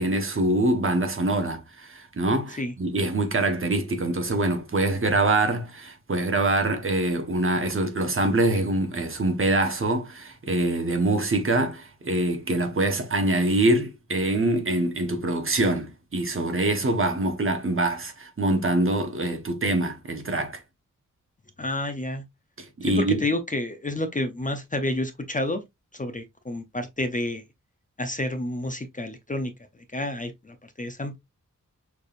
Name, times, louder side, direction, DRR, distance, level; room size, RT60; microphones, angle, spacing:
voice 1, 0.0-20.6 22.6-23.2, right 2 dB, 40° right, 1.1 m, -24 dB
voice 2, 21.6-22.2 22.9-25.6 25.9-27.4 28.0-29.5 29.9-31.2, left 1 dB, 25° left, 0.6 m, -29 dB
6.4 x 3.5 x 2.4 m
wide cardioid pair, 115°, 32 cm